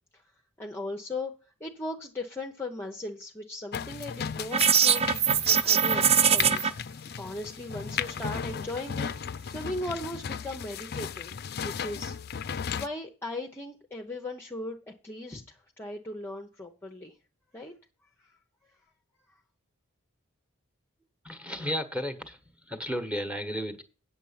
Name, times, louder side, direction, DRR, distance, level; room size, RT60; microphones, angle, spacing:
voice 1, 0.6-1.3 1.6-5.1 5.5-6.7 7.2-9.1 9.5-11.4 11.6-12.1 12.7-14.8 15.0-17.2 17.5-17.7 18.2-18.3 18.6-18.8 19.3-19.4, left 2 dB, 10° left, 0.8 m, -38 dB
sound 1, 3.7-12.9, left 7 dB, 50° left, 0.5 m, -36 dB
sound 2, 4.5-6.7, right 7 dB, 30° right, 0.5 m, -22 dB
voice 2, 21.2-23.8, equal, 5° right, 1.3 m, -33 dB
9.0 x 7.0 x 5.7 m
head